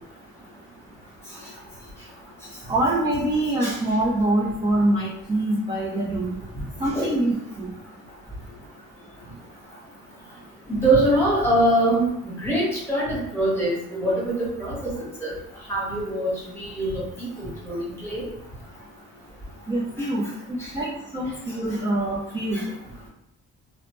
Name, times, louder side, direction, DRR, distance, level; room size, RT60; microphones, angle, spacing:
voice 1, 2.7-6.4 6.8-7.7 19.7-20.3 20.7-22.7, right 1 dB, 15° right, -5 dB, 0.4 m, -24 dB
voice 2, 10.7-14.9 15.2-15.3 15.7-18.2 20.6-20.7, right 1 dB, 5° left, -6 dB, 1.3 m, -23 dB
2.7 x 2.0 x 3.1 m, 0.76 s
cardioid pair, 115°, 33 cm